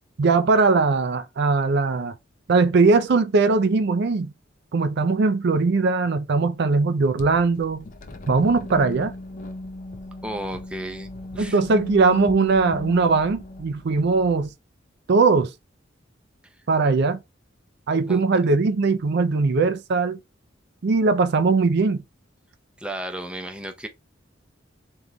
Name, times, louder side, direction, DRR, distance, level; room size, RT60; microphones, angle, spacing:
voice 1, 0.2-2.2 2.5-4.3 4.7-7.8 8.3-9.1 11.4-14.5 15.1-15.5 16.7-17.2 17.9-20.2 20.8-22.0, right 4 dB, 60° right, 0.5 m, -20 dB
sound 1, 7.2-14.5, left 1 dB, 45° left, 0.6 m, -37 dB
voice 2, 10.2-11.6 18.1-18.2 22.8-23.9, right 1 dB, 5° right, 0.6 m, -33 dB
3.6 x 3.1 x 3.8 m
head